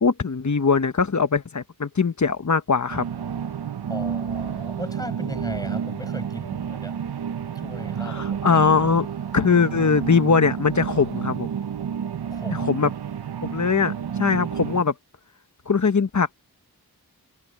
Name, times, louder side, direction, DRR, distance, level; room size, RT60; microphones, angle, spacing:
voice 1, 0.0-3.1 8.0-9.1 9.3-11.5 12.5-12.9 13.4-13.9 14.2-14.9 15.7-16.3, left 5 dB, 50° left, 1.2 m, -21 dB
sound 1, 2.9-14.8, right 8 dB, 85° right, 0.7 m, -30 dB
voice 2, 3.9-7.0 7.5-8.6 12.3-12.7, left 1 dB, 10° left, 7.0 m, -37 dB
wide cardioid pair, 65°, 38 cm